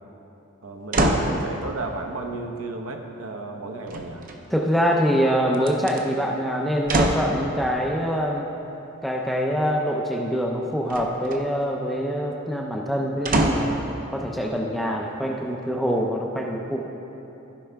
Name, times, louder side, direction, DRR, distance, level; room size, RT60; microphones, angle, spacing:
voice 1, 0.6-4.3, right 2 dB, 70° right, 4 dB, 0.8 m, -33 dB
sound 1, 0.9-1.4 3.9-4.6 5.5-6.0 6.9-7.3 10.9-11.4 13.2-13.8 14.5-14.6, right 1 dB, 40° right, 0.6 m, -23 dB
voice 2, 4.5-8.5 9.0-16.9, equal, ahead, -1 dB, 0.5 m, -25 dB
14.5 x 5.5 x 3.4 m, 3.0 s
head